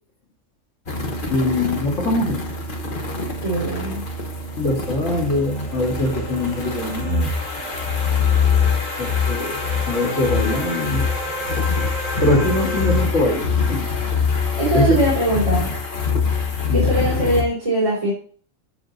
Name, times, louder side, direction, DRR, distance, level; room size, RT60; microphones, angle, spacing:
sound 1, 0.9-17.4, left 5 dB, 45° left, 1.4 m, -24 dB
voice 1, 1.3-2.4 4.6-7.3 9.0-9.6 9.9-11.1 12.2-13.9 14.7-15.0 16.7-17.0, left 1 dB, 75° left, 1 dB, 2.3 m, -22 dB
voice 2, 3.4-4.0 14.5-15.7 16.7-18.1, right 1 dB, 25° right, -7 dB, 3.5 m, -21 dB
sound 2, 4.6-13.0, equal, 10° left, 3.9 m, -32 dB
8.1 x 7.1 x 3.9 m, 0.44 s
omnidirectional pair, 1.3 m